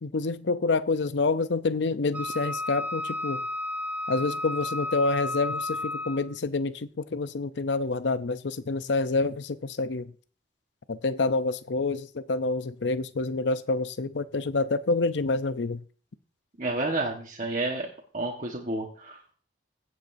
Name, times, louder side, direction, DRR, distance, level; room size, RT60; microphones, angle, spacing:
voice 1, 0.0-3.4 4.1-10.1 10.9-15.8, left 3 dB, 80° left, 0.6 m, -27 dB
Wind instrument woodwind instrument, 2.1-6.3, left 2 dB, 10° right, 1.4 m, -32 dB
voice 2, 16.6-17.9 18.1-19.3, right 2 dB, 45° right, 1.4 m, -30 dB
16.0 x 8.1 x 2.7 m
head